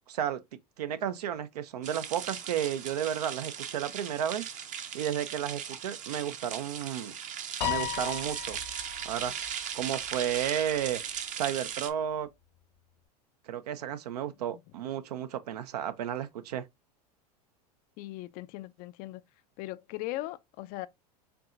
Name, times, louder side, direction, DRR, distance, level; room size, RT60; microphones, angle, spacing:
voice 1, 0.1-0.4 0.8-4.5 4.9-7.1 7.6-8.6 9.0-9.3 9.7-11.0 11.3-12.3 13.5-16.6, right 10 dB, 80° right, 0.6 m, -32 dB
sound 1, 1.8-11.9, right 8 dB, 40° right, 0.7 m, -38 dB
Piano, 7.6-10.1, left 12 dB, 75° left, 1.1 m, -36 dB
voice 2, 18.0-19.2 19.6-20.9, left 17 dB, 45° left, 0.4 m, -39 dB
4.6 x 2.7 x 2.5 m
hypercardioid pair, 95°, 20 cm